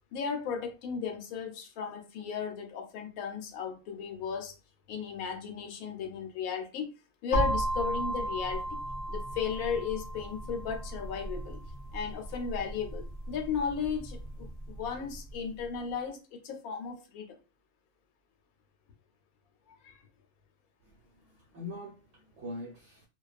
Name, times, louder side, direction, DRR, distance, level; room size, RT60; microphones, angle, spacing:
voice 1, 0.1-4.5 4.9-6.9 7.2-8.8 9.1-11.6 11.9-17.3 19.7-20.0, left 6 dB, 85° left, 1.1 m, -35 dB
sound 1, 7.3-15.2, right 1 dB, 65° left, 0.5 m, -35 dB
voice 2, 20.8-23.1, left 1 dB, 60° right, 0.9 m, -43 dB
2.3 x 2.2 x 2.4 m
omnidirectional pair, 1.5 m